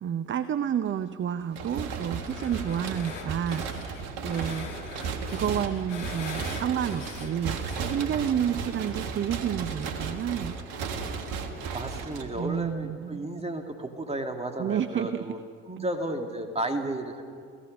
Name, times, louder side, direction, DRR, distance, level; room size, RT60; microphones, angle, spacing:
voice 1, 0.0-4.9 5.2-10.5 12.3-13.2 14.6-15.3 15.8-15.9, right 9 dB, 35° right, 13 dB, 0.7 m, -30 dB
sound 1, 1.5-12.7, right 5 dB, 65° right, 1.7 m, -35 dB
sound 2, 2.1-8.0, left 5 dB, 85° left, 1.5 m, -42 dB
voice 2, 11.7-15.4 15.7-17.2, right 1 dB, 15° right, 5 dB, 2.5 m, -33 dB
28.5 x 17.0 x 5.4 m, 2.1 s
figure-of-eight pair, 55°, 36 cm